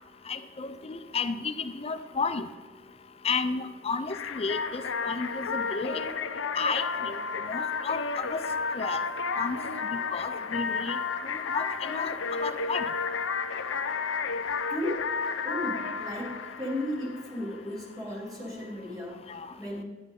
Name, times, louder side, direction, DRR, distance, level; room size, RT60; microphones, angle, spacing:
voice 1, 0.3-2.4 3.2-6.0 6.5-7.2 7.5-8.4 8.7-9.0 9.4-9.6 10.1-11.0 11.2-12.1 12.4-12.9 19.3-19.5, left 4 dB, 30° left, 10 dB, 0.5 m, -32 dB
sound 1, 4.1-17.6, left 5 dB, 85° left, 0.7 m, -32 dB
voice 2, 14.7-15.0 15.4-19.3 19.6-19.8, left 1 dB, 20° right, -3 dB, 3.1 m, -35 dB
10.5 x 10.0 x 3.7 m, 1.4 s
head